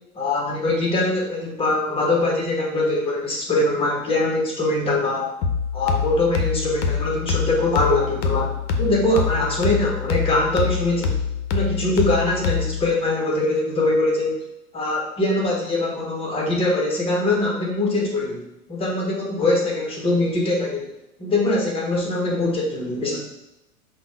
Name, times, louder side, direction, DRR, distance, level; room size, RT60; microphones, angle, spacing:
voice 1, 0.1-5.3 5.7-8.5 8.8-11.2 11.5-14.4 14.7-18.4 18.7-20.9 21.2-23.2, left 2 dB, 15° left, -2 dB, 0.8 m, -22 dB
sound 1, 5.4-12.9, left 6 dB, 45° left, 0.6 m, -25 dB
5.1 x 2.2 x 3.1 m, 0.90 s
figure-of-eight pair, 95°, 45 cm